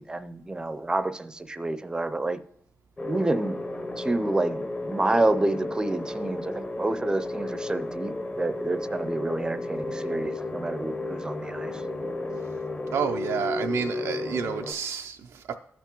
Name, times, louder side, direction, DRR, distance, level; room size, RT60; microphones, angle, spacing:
voice 1, 0.0-2.4 3.1-3.6 4.0-11.7, right 2 dB, 15° right, 0.5 m, -28 dB
sound 1, 3.0-14.7, left 2 dB, 25° left, 0.7 m, -33 dB
voice 2, 12.9-15.5, right 7 dB, 90° right, 0.4 m, -30 dB
15.5 x 5.9 x 2.9 m
wide cardioid pair, 115°, 5 cm